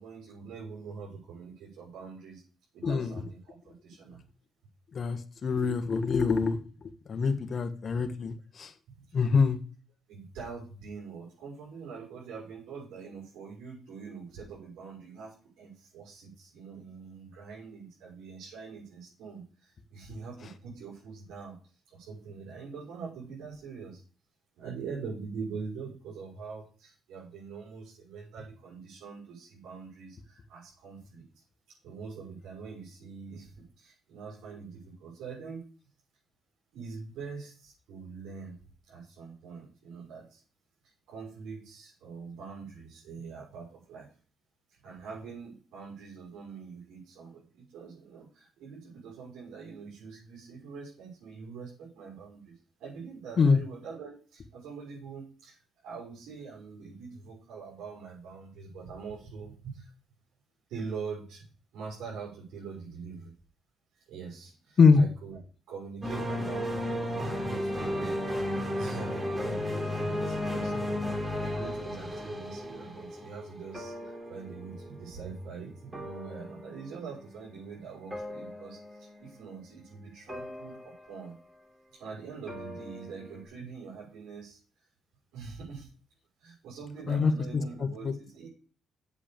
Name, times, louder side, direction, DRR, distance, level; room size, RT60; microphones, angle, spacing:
voice 1, 0.0-2.4 2.7-4.2 9.0-9.2 10.1-21.5 21.9-24.0 24.5-31.3 31.8-35.6 36.7-38.5 38.9-40.4 40.8-44.1 44.8-59.9 60.7-63.3 64.0-65.4 65.7-68.1 68.7-71.2 71.5-81.3 82.0-84.6 85.3-85.9 86.4-88.5, right 5 dB, 90° right, -6 dB, 5.9 m, -44 dB
voice 2, 4.9-6.6 7.1-8.7 9.1-9.6 53.4-53.6 64.8-65.0 87.1-87.3 87.8-87.9, left 5 dB, 45° left, 7 dB, 1.5 m, -24 dB
sound 1, 66.0-75.4 75.7-77.1 78.1-79.2 80.3-81.0 82.5-83.4, left 1 dB, 15° right, 3.5 m, -35 dB
8.2 x 7.7 x 6.9 m, 0.39 s
cardioid pair, 90°, 0 cm